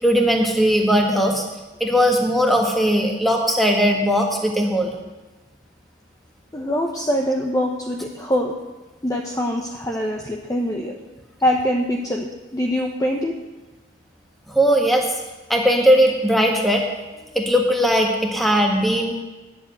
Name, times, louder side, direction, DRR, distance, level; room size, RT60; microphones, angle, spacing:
voice 1, 0.0-1.4 1.8-4.9 14.5-15.1 15.5-16.8 17.3-19.1, equal, ahead, 1 dB, 1.5 m, -18 dB
voice 2, 6.5-8.5 9.0-10.9 11.4-13.3, equal, 15° left, 1 dB, 0.8 m, -23 dB
10.5 x 7.7 x 8.3 m, 1.1 s
head